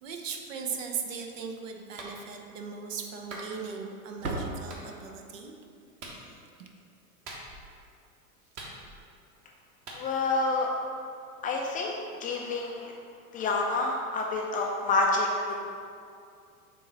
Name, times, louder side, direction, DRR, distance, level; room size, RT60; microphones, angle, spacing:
voice 1, 0.0-5.5 6.6-6.7, right 6 dB, 60° right, 3 dB, 0.9 m, -38 dB
Slam, 1.0-1.7 2.0-2.1 2.5-2.6 3.4-3.8 4.0-5.3 8.0-8.1 8.4-8.6 10.1-10.2, right 2 dB, 80° right, 0.9 m, -39 dB
Clapping, 2.0-2.2 3.3-3.5 4.7-4.8 6.0-6.2 7.3-7.7 8.6-9.1 9.9-10.0, right 2 dB, 40° right, 1.4 m, -42 dB
voice 2, 10.0-10.7 11.4-11.9 12.2-12.9 13.3-15.7, left 3 dB, 20° left, 0 dB, 0.4 m, -28 dB
7.3 x 3.0 x 5.3 m, 2.4 s
figure-of-eight pair, 90°, 43 cm